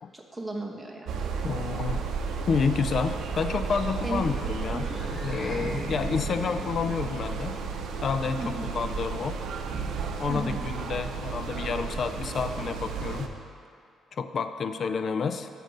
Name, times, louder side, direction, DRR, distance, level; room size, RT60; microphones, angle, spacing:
voice 1, 0.1-1.3 4.0-4.3 4.7-5.0 8.4-8.7 10.3-10.7, right 2 dB, 10° right, 0 dB, 1.2 m, -35 dB
sound 1, 1.1-13.3, right 5 dB, 75° right, 0.6 m, -33 dB
voice 2, 1.4-2.1 2.4-4.9 5.2-7.5 8.0-9.4 10.2-13.3 14.1-15.5, left 5 dB, 50° left, 10 dB, 0.4 m, -29 dB
sound 2, 4.6-9.2, left 1 dB, 30° left, 1.7 m, -41 dB
6.5 x 6.1 x 6.5 m, 2.5 s
cardioid pair, 90°, 0 cm